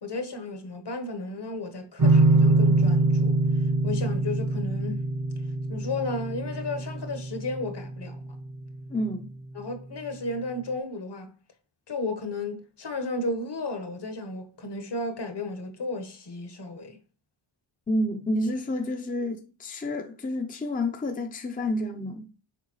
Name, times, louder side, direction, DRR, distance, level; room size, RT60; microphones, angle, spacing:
voice 1, 0.0-3.4 3.8-5.0 5.7-8.2 9.5-11.3 11.9-17.0, left 2 dB, 55° left, 1.3 m, -33 dB
sound 1, 2.0-9.2, right 2 dB, 40° right, 0.8 m, -24 dB
voice 2, 8.9-9.3 17.9-22.3, left 1 dB, 20° left, 0.6 m, -29 dB
6.7 x 4.7 x 3.1 m
wide cardioid pair, 145°, 48 cm